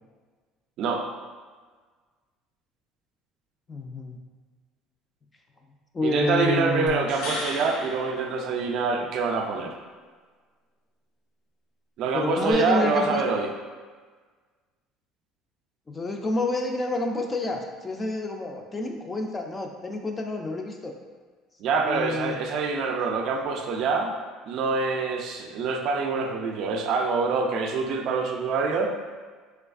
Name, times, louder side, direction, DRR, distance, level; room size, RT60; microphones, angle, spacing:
voice 1, 3.7-4.2 5.9-7.1 12.1-13.2 15.9-20.9 21.8-22.4, left 2 dB, 20° left, 3 dB, 0.3 m, -28 dB
voice 2, 6.0-9.8 12.0-13.5 21.6-24.1 24.5-28.9, right 4 dB, 60° right, 3 dB, 0.3 m, -25 dB
sound 1, 6.9-9.1 12.5-12.6, left 1 dB, 75° left, 0.7 m, -36 dB
3.3 x 3.1 x 2.4 m, 1.5 s
cardioid pair, 130°, 0 cm